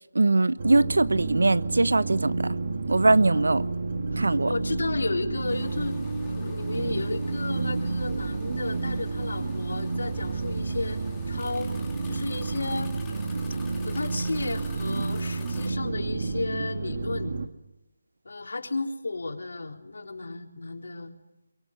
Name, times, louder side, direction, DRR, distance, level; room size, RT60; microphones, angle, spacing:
voice 1, 0.1-2.5 2.9-3.6 4.2-4.5, right 2 dB, 85° right, 1.0 m, -21 dB
sound 1, 0.6-17.5, right 3 dB, 50° right, 1.9 m, -30 dB
voice 2, 4.1-6.0 6.3-11.7 12.0-12.9 13.8-17.4 18.2-21.2, left 3 dB, 75° left, 3.8 m, -33 dB
sound 2, 5.5-15.7, left 6 dB, 10° left, 2.6 m, -50 dB
Bass guitar, 10.1-16.4, right 5 dB, 10° right, 4.6 m, -46 dB
23.5 x 22.5 x 9.7 m
figure-of-eight pair, 165°, 0 cm